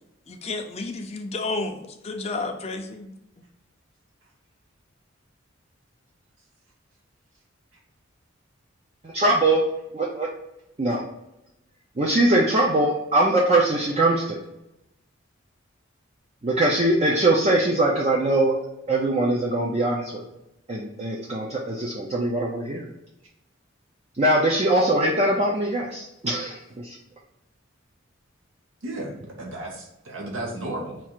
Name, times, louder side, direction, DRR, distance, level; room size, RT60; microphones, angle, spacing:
voice 1, 0.3-3.1, left 3 dB, 30° left, 5 dB, 0.5 m, -31 dB
voice 2, 9.0-9.6 9.9-10.3 10.8-11.0 12.0-14.4 16.4-18.5 18.9-20.2 20.7-22.9 24.2-27.0, right 1 dB, 30° right, -3 dB, 0.5 m, -22 dB
voice 3, 28.8-31.0, right 1 dB, 80° right, 0 dB, 1.0 m, -34 dB
4.4 x 2.4 x 4.4 m, 0.88 s
head